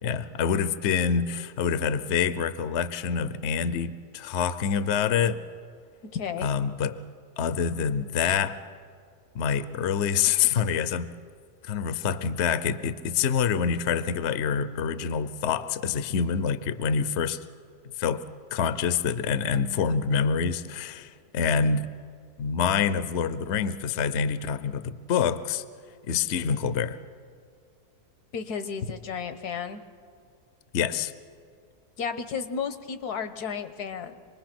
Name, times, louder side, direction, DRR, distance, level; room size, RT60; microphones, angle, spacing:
voice 1, 0.0-5.4 6.4-7.0 7.4-8.6 9.3-11.1 11.6-17.4 18.0-21.9 22.4-25.6 26.1-27.0 30.7-31.1, left 6 dB, 55° left, 13 dB, 0.9 m, -26 dB
voice 2, 6.1-6.5 28.3-29.8 32.0-34.2, left 6 dB, 80° left, 10 dB, 1.6 m, -33 dB
26.5 x 20.5 x 6.0 m, 2.1 s
omnidirectional pair, 1.7 m